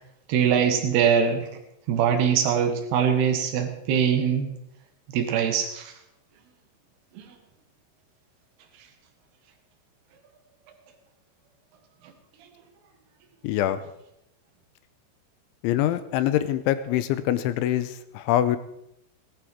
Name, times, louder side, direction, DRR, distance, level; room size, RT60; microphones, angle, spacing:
voice 1, 0.3-1.6 1.9-4.5 5.1-5.9 7.2-7.3, right 7 dB, 65° right, 5 dB, 3.4 m, -22 dB
voice 2, 13.4-13.8 15.6-18.6, left 12 dB, 80° left, 12 dB, 3.1 m, -24 dB
18.5 x 11.5 x 4.7 m, 0.80 s
omnidirectional pair, 5.5 m